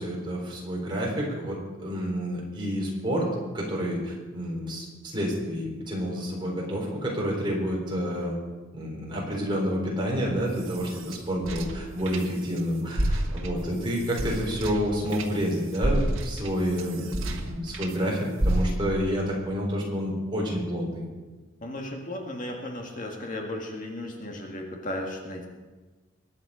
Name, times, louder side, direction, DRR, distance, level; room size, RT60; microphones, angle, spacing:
voice 1, 0.0-4.8 5.1-8.4 8.7-21.0, equal, 25° right, -2 dB, 4.0 m, -29 dB
sound 1, 10.3-12.6 12.9-18.0 18.4-19.1, right 1 dB, 80° right, 1.6 m, -30 dB
voice 2, 21.6-25.5, left 1 dB, 40° left, 1 dB, 1.8 m, -35 dB
22.0 x 9.6 x 5.0 m, 1.3 s
head